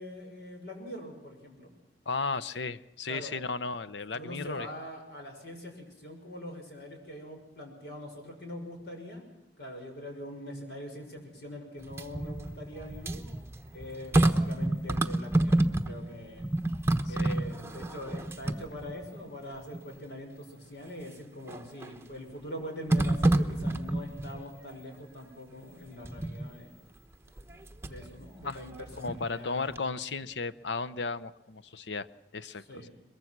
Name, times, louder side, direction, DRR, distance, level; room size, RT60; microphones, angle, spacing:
voice 1, 0.0-1.7 3.1-3.3 4.1-9.2 9.6-13.2 13.7-16.5 17.1-26.8 27.8-29.8 32.7-32.9, equal, 65° left, 3 dB, 6.1 m, -43 dB
voice 2, 2.1-4.7 17.1-17.4 21.6-21.7 28.4-28.6 29.0-32.1 32.3-32.9, left 4 dB, 90° left, 15 dB, 0.8 m, -35 dB
sound 1, 11.8-16.1 16.4-19.2 19.7-19.8 21.5-22.0 22.9-24.4 26.0-26.5 27.4-28.1 28.5-29.5 29.8-29.9, right 1 dB, 15° right, 1.0 m, -28 dB
23.0 x 22.0 x 6.1 m, 0.94 s
head